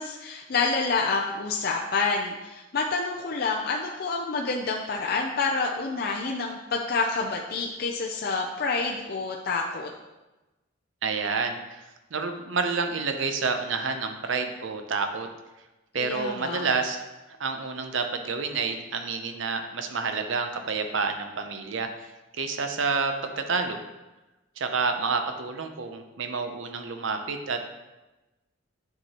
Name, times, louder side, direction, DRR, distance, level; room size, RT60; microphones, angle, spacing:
voice 1, 0.0-9.9 16.0-16.7, left 4 dB, 50° left, 0 dB, 0.5 m, -28 dB
voice 2, 11.0-11.8 12.1-15.3 15.9-17.0 17.4-21.9 22.4-23.8 24.6-27.6, right 4 dB, 70° right, 6 dB, 0.7 m, -29 dB
9.0 x 4.7 x 3.0 m, 1.1 s
head